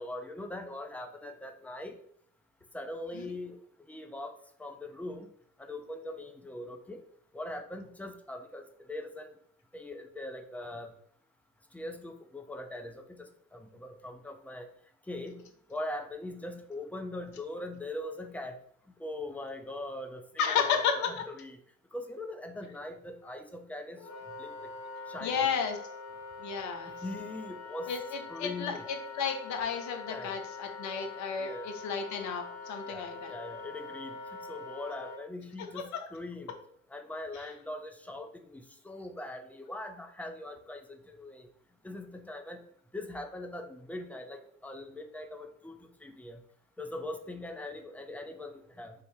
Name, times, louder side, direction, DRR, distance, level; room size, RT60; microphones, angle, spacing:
voice 1, 0.0-2.0 2.7-3.6 3.9-4.3 4.6-5.3 5.6-7.0 7.3-8.6 8.9-9.3 9.7-10.9 11.7-14.7 15.1-18.5 19.0-21.6 21.9-24.0 24.4-24.7 25.1-25.5 26.9-27.9 28.3-28.9 30.0-30.4 31.4-31.7 32.9-34.1 34.5-36.5 36.9-41.5 41.8-42.6 42.9-45.7 46.0-46.4 46.8-48.9, left 1 dB, 5° left, 5 dB, 0.4 m, -41 dB
voice 2, 20.4-21.0 25.2-25.8 26.4-27.0 27.9-33.4 37.3-37.4, left 6 dB, 45° left, 4 dB, 0.8 m, -32 dB
Wind instrument woodwind instrument, 24.0-35.2, left 4 dB, 65° left, 1.2 m, -44 dB
3.3 x 2.6 x 3.4 m, 0.65 s
figure-of-eight pair, 60°, 39 cm